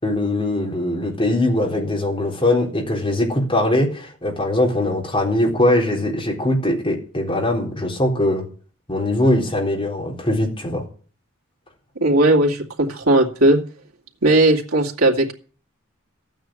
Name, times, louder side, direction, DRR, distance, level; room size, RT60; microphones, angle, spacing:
voice 1, 0.0-8.5 8.9-10.8, left 1 dB, 25° left, -1 dB, 3.9 m, -21 dB
voice 2, 12.0-13.6 14.2-15.3, right 1 dB, 90° right, 0 dB, 2.5 m, -17 dB
13.5 x 9.2 x 7.7 m, 0.41 s
head